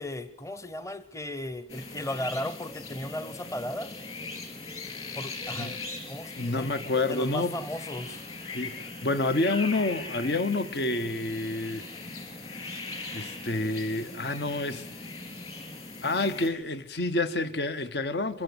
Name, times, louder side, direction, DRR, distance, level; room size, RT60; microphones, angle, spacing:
voice 1, 0.0-3.9 5.2-5.8 6.1-6.7 7.1-8.2, left 1 dB, 15° left, 0.8 m, -36 dB
sound 1, 1.7-16.5, left 3 dB, 35° left, 3.7 m, -40 dB
voice 2, 6.3-7.6 8.5-11.9 13.1-14.9 16.0-18.4, left 2 dB, 70° left, 1.1 m, -29 dB
23.5 x 15.5 x 8.0 m
head